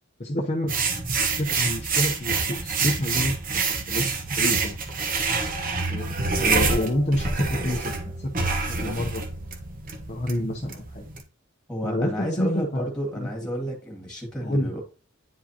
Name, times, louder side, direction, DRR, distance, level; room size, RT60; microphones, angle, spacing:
voice 1, 0.2-0.7 1.1-3.3 3.9-4.8 5.9-9.2 10.1-11.1 11.8-12.9 13.1-13.3 14.4-14.7, left 1 dB, 35° left, -1 dB, 0.7 m, -28 dB
sound 1, 0.7-11.2, right 4 dB, 40° right, 1.0 m, -27 dB
voice 2, 11.7-14.8, equal, 5° left, -1 dB, 2.0 m, -31 dB
9.5 x 4.9 x 2.9 m, 0.35 s
head